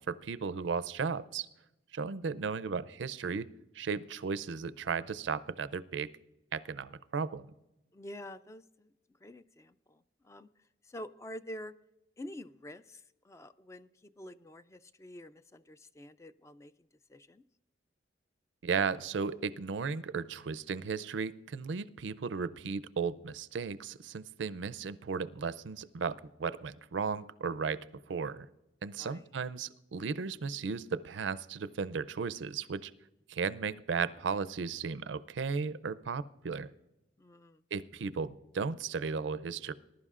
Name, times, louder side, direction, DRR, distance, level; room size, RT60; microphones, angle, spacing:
voice 1, 0.0-1.5 1.9-3.5 3.7-6.1 6.5-7.4 18.6-28.5 28.8-32.9 33.3-36.7 37.7-39.7, right 5 dB, 90° right, 17 dB, 0.5 m, -35 dB
voice 2, 7.9-11.7 12.2-16.7 17.1-17.4 28.9-29.3 37.2-37.6, left 1 dB, 15° left, 14 dB, 0.3 m, -48 dB
20.0 x 11.5 x 2.5 m, 0.92 s
head